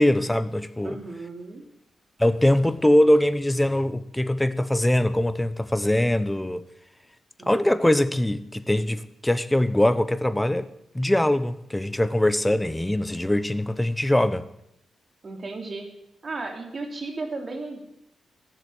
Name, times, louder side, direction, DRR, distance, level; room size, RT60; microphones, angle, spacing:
voice 1, 0.0-1.0 2.2-6.7 7.4-10.7 10.9-14.5, left 1 dB, 10° left, 1.0 m, -22 dB
voice 2, 0.8-1.6 7.4-7.7 15.2-15.9 16.2-18.0, right 3 dB, 40° right, 3.2 m, -35 dB
14.5 x 8.1 x 9.3 m
cardioid pair, 80°, 0 cm